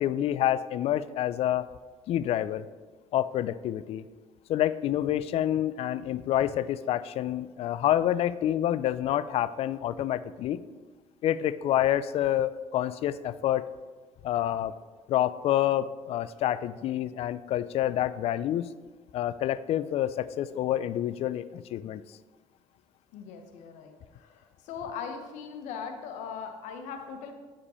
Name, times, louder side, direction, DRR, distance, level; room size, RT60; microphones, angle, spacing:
voice 1, 0.0-1.7 2.1-2.6 3.1-4.0 4.5-10.6 11.2-13.6 14.2-14.7 15.1-18.7 19.1-22.0, left 12 dB, 55° left, 16 dB, 0.4 m, -28 dB
voice 2, 23.1-27.3, left 6 dB, 80° left, 5 dB, 1.0 m, -40 dB
8.4 x 5.1 x 4.3 m, 1.4 s
cardioid pair, 105°, 12 cm